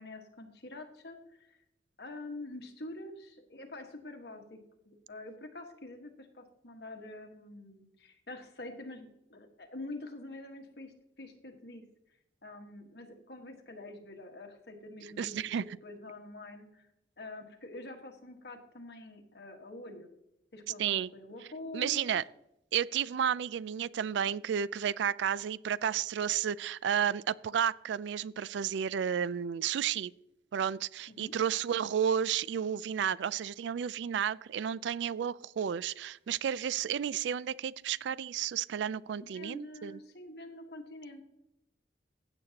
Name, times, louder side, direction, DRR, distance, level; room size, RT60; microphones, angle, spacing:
voice 1, 0.0-1.6 2.0-4.6 4.8-11.8 12.4-16.9 17.2-20.1 20.5-22.1 31.1-31.3 39.3-41.2, left 2 dB, 60° left, 1.5 m, -46 dB
voice 2, 15.2-15.6 20.8-21.1 21.7-22.2 22.7-30.1 30.5-40.0, right 8 dB, 70° right, 0.3 m, -32 dB
15.5 x 8.0 x 2.9 m
head